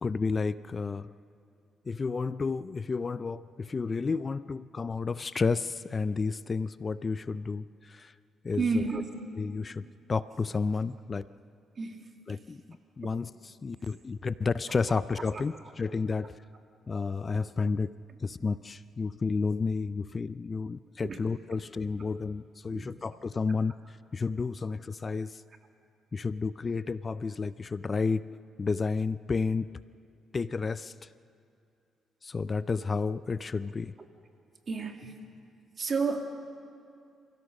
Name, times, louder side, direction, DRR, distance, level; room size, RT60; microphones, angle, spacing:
voice 1, 0.0-1.1 1.9-8.1 8.4-8.8 9.4-9.8 10.1-11.3 12.3-12.6 13.0-13.3 13.6-16.3 16.9-17.9 18.2-25.4 26.1-28.3 28.6-29.7 30.3-30.9 32.2-33.9, left 4 dB, 35° left, 15 dB, 0.4 m, -31 dB
voice 2, 8.5-9.1 11.8-12.1 15.3-15.4 21.0-21.2 22.7-23.0 34.7-35.1 35.8-36.2, right 4 dB, 40° right, 4 dB, 2.2 m, -30 dB
29.0 x 16.0 x 6.4 m, 2.5 s
cardioid pair, 90°, 0 cm